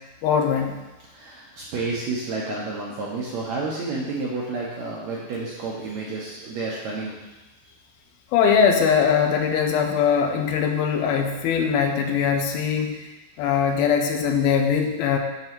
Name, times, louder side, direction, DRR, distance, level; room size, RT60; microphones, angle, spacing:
voice 1, 0.2-0.8 8.3-13.1 13.4-15.2, left 7 dB, 80° left, 4 dB, 2.6 m, -21 dB
voice 2, 1.1-7.2 7.6-7.7, right 3 dB, 70° right, -5 dB, 1.7 m, -30 dB
8.3 x 4.0 x 6.1 m, 1.1 s
omnidirectional pair, 4.3 m